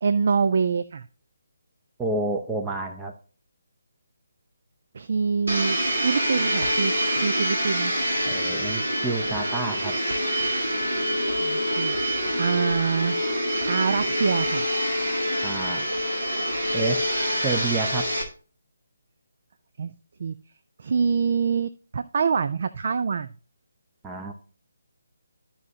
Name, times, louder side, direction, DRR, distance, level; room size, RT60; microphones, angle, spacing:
voice 1, 0.0-1.1 4.9-5.8 6.0-7.9 11.4-12.0 12.4-13.2 13.7-14.7 19.8-19.9 20.2-20.4 20.8-23.3, right 5 dB, 45° right, 12 dB, 0.4 m, -25 dB
voice 2, 2.0-3.1 8.3-9.9 15.4-15.9 16.7-17.0 17.4-18.1 24.0-24.3, right 3 dB, 10° right, 2 dB, 0.7 m, -29 dB
Domestic sounds home sounds, 5.5-18.2, equal, 60° right, 2.8 m, -26 dB
13.5 x 5.6 x 2.7 m, 0.38 s
figure-of-eight pair, 145°, 0 cm